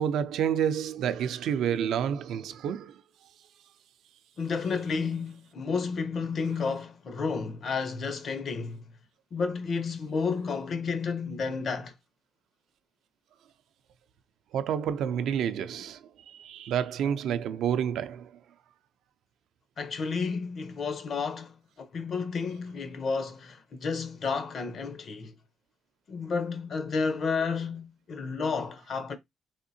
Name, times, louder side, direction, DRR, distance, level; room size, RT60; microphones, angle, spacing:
voice 1, 0.0-3.0 14.5-18.4, right 8 dB, 80° right, 0.4 m, -29 dB
voice 2, 4.4-8.8 9.3-11.9 19.8-25.3 26.1-29.2, left 5 dB, 55° left, 0.6 m, -31 dB
3.5 x 2.7 x 2.6 m
cardioid pair, 90°, 0 cm